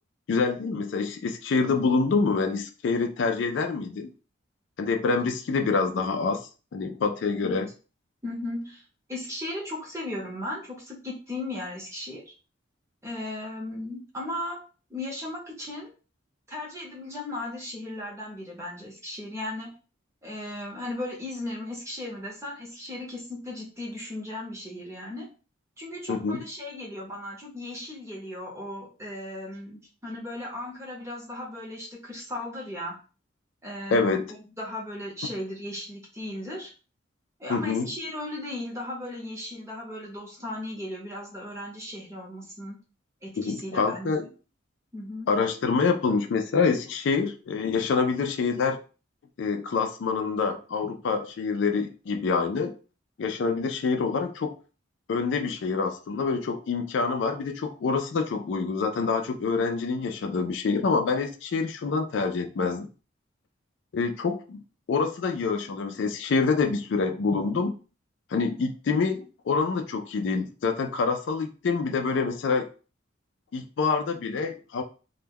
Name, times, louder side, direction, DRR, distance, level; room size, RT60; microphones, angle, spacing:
voice 1, 0.3-4.1 4.8-6.4 6.7-7.7 26.1-26.4 33.9-34.3 37.5-37.9 43.4-44.2 45.3-48.8 49.4-52.7 53.2-54.5 55.1-62.9 63.9-64.6 64.9-67.7 68.3-72.7 73.5-74.8, left 4 dB, 65° left, 6 dB, 0.3 m, -26 dB
voice 2, 8.2-8.8 9.1-12.3 13.0-14.6 14.9-15.9 16.5-19.7 20.2-25.3 25.8-33.0 33.6-36.7 37.4-42.8 43.2-44.1 44.9-45.3, left 1 dB, 15° right, -3 dB, 0.8 m, -36 dB
2.2 x 2.1 x 3.3 m, 0.35 s
head